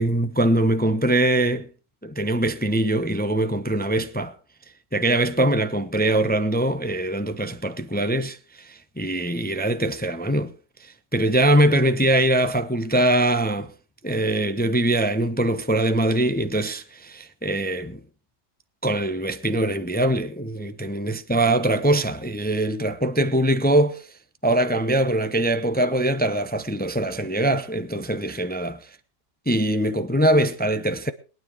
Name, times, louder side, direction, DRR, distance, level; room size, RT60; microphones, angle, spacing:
voice 1, 0.0-1.7 2.0-4.3 4.9-10.5 10.8-13.7 14.0-18.0 18.8-24.0 24.4-28.8 29.5-31.1, right 1 dB, 10° left, 0.6 m, -22 dB
21.5 x 9.8 x 4.9 m
omnidirectional pair, 1.7 m